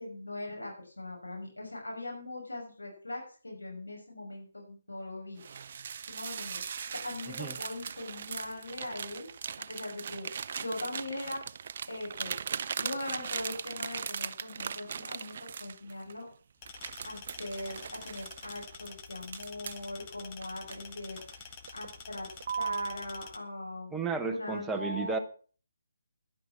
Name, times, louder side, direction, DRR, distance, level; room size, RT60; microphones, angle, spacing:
voice 1, 0.0-5.4 6.1-9.3 9.7-10.3 10.6-11.4 11.9-12.3 12.8-16.2 17.0-21.2 21.7-22.3 22.6-23.9 24.2-25.2, left 2 dB, 85° left, -1 dB, 6.4 m, -40 dB
sound 1, 5.4-16.2 16.7-19.9 20.4-21.3 21.7-22.0 22.4-23.0, right 7 dB, 45° right, 0.5 m, -39 dB
sound 2, 16.6-23.4, left 6 dB, 25° left, 1.4 m, -48 dB
voice 2, 23.9-25.2, right 4 dB, 5° right, 5 dB, 1.1 m, -33 dB
11.5 x 10.0 x 6.0 m, 0.40 s
figure-of-eight pair, 145°, 0 cm